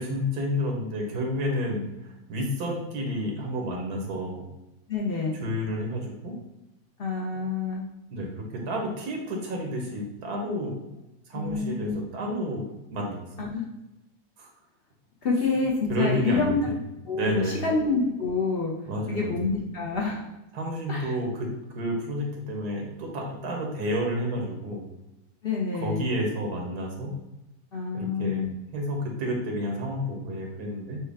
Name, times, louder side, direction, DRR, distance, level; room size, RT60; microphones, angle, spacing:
voice 1, 0.0-4.5 5.4-6.4 8.1-10.9 11.3-13.5 14.4-14.5 15.9-16.7 17.1-17.6 18.9-19.3 20.5-21.5 21.7-24.9 25.7-27.1 27.9-28.4 28.7-31.0, equal, 90° right, 1 dB, 1.5 m, -30 dB
voice 2, 4.9-5.4 7.0-7.9 11.3-12.0 13.4-13.6 15.2-16.6 17.1-18.7 19.1-20.3 20.9-21.1 25.4-26.1 27.7-28.6, left 4 dB, 50° left, -2 dB, 0.8 m, -27 dB
6.3 x 2.3 x 3.5 m, 0.95 s
omnidirectional pair, 1.6 m